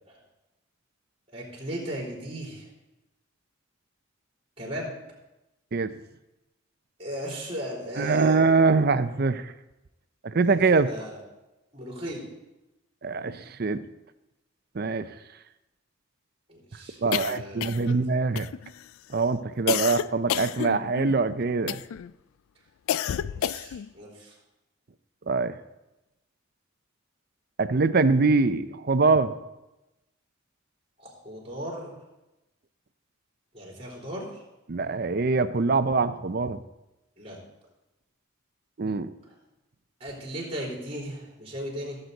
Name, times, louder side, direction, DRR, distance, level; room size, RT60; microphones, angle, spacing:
voice 1, 1.3-2.7 4.6-4.9 7.0-8.5 10.4-11.2 11.7-12.3 16.5-18.0 23.1-24.3 31.0-32.0 33.5-34.4 37.2-37.4 40.0-42.0, equal, 30° right, -3 dB, 3.8 m, -37 dB
voice 2, 8.0-9.5 10.2-10.9 13.0-13.8 14.7-15.1 17.0-18.5 19.1-21.8 25.3-25.6 27.6-29.3 34.7-36.6 38.8-39.1, right 4 dB, 50° right, 12 dB, 0.5 m, -23 dB
sound 1, 17.1-18.0 18.4-18.9 19.7-21.2 21.7-22.1 22.9-23.9, left 10 dB, 80° left, 0.3 m, -30 dB
16.5 x 8.0 x 4.0 m, 0.98 s
head